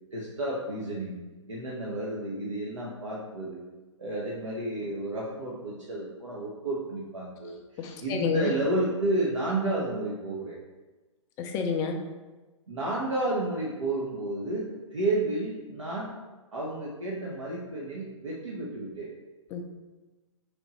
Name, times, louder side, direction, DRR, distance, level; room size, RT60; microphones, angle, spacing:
voice 1, 0.1-1.2 1.5-3.6 4.0-10.6 12.7-16.1 16.5-19.1, right 2 dB, 75° right, -4 dB, 0.8 m, -31 dB
voice 2, 7.8-8.5 11.4-12.0 19.5-19.6, left 6 dB, 20° left, 4 dB, 0.3 m, -29 dB
3.5 x 3.0 x 4.0 m, 1.2 s
figure-of-eight pair, 120°, 16 cm